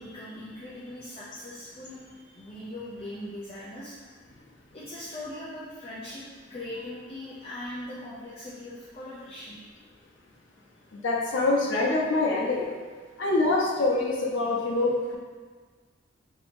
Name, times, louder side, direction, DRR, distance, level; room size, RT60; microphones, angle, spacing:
voice 1, 0.0-4.0 4.7-6.2 6.5-9.6, left 1 dB, 30° left, -9 dB, 0.5 m, -40 dB
voice 2, 10.9-12.7 13.2-15.2, left 2 dB, 90° left, -2 dB, 0.7 m, -25 dB
2.8 x 2.7 x 4.3 m, 1.5 s
head